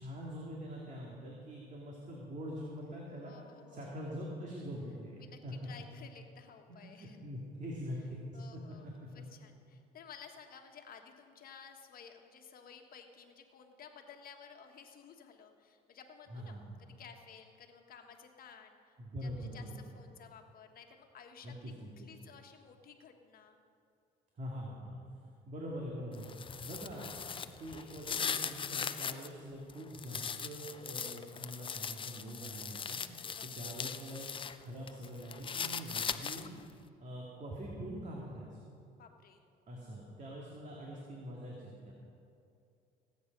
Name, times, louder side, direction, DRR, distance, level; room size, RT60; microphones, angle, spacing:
voice 1, 0.0-3.3 3.7-5.5 6.7-8.6 9.2-9.3 16.3-16.7 19.0-19.8 21.4-22.1 24.4-24.9 25.5-26.3 26.6-34.3 34.6-36.5 37.0-38.6 39.7-41.9, equal, 40° right, -3 dB, 2.4 m, -44 dB
voice 2, 3.2-4.0 5.2-7.2 8.3-8.9 9.1-19.0 19.2-23.6 33.1-33.8 38.9-39.5, left 6 dB, 50° left, 4 dB, 1.5 m, -55 dB
sound 1, 26.1-29.3 29.7-34.6 34.9-36.6, left 6 dB, 25° left, 0.6 m, -39 dB
18.0 x 8.7 x 5.4 m, 2.6 s
supercardioid pair, 90°, 19 cm